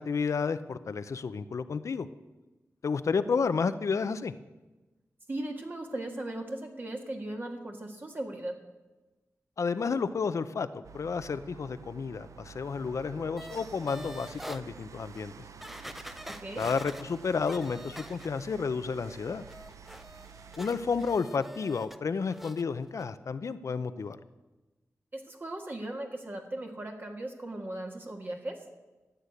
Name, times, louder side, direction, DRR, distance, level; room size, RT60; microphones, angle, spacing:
voice 1, 0.0-2.1 2.8-4.3 9.6-15.3 16.6-19.4 20.6-24.2, left 5 dB, 75° left, 12 dB, 0.7 m, -31 dB
voice 2, 5.3-8.6 16.3-16.6 25.1-28.6, right 1 dB, 40° right, 2 dB, 1.6 m, -37 dB
sound 1, 10.8-21.2, right 7 dB, 90° right, 0.6 m, -50 dB
sound 2, 13.4-14.6 15.2-15.3 15.6-18.6 18.9-22.0 22.3-22.6 23.0-23.1, equal, 5° right, 0.6 m, -46 dB
14.0 x 8.2 x 8.3 m, 1.1 s
wide cardioid pair, 95°, 5 cm